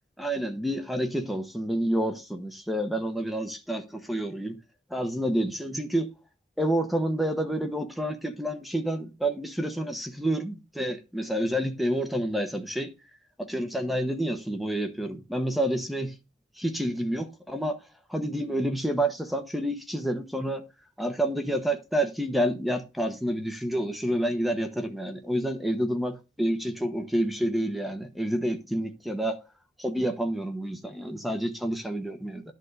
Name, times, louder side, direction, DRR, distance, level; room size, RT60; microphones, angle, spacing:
voice 1, 0.2-4.6 4.9-6.1 6.6-12.9 13.4-16.1 16.6-17.8 18.1-20.6 21.0-29.4 29.8-32.4, right 1 dB, ahead, 1.0 m, -29 dB
10.5 x 3.6 x 6.5 m
head